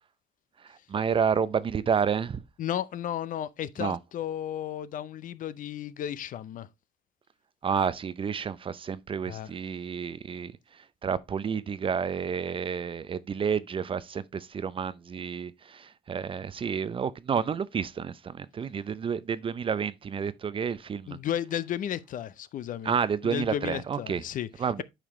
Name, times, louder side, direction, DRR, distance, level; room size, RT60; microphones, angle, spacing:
voice 1, 0.6-2.4 3.8-4.0 7.6-21.2 22.8-24.2 24.6-24.8, right 6 dB, 30° right, 0.5 m, -30 dB
voice 2, 2.6-6.7 9.2-9.5 21.1-22.9 23.2-24.5, left 10 dB, 50° left, 0.6 m, -33 dB
8.9 x 4.9 x 3.1 m
cardioid pair, 110°, 17 cm